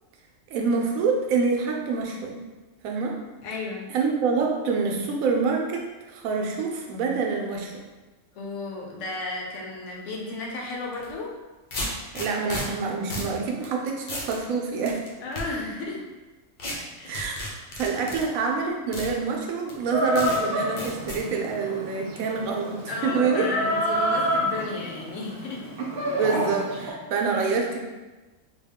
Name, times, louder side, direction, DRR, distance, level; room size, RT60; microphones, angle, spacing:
voice 1, 0.5-2.4 2.8-3.2 3.9-7.7 12.1-15.0 17.0-17.5 17.8-23.5 26.1-27.8, right 4 dB, 90° right, 1 dB, 1.0 m, -26 dB
voice 2, 3.4-3.9 8.3-11.3 15.2-16.0 17.0-17.2 22.9-25.7 26.2-26.3, left 2 dB, 70° left, -1 dB, 0.9 m, -33 dB
sound 1, 10.9-11.1 11.7-12.6 13.1-13.3 13.6-13.7 14.1-14.4 14.9-15.4 16.6-16.7 17.1-18.2 18.9-19.1 19.7-19.8 20.2-20.4 20.8-21.2, left 1 dB, 50° left, 0.7 m, -33 dB
Chicken rooster, 19.9-26.9, equal, 60° right, 0.8 m, -28 dB
3.4 x 2.3 x 3.5 m, 1.2 s
omnidirectional pair, 1.4 m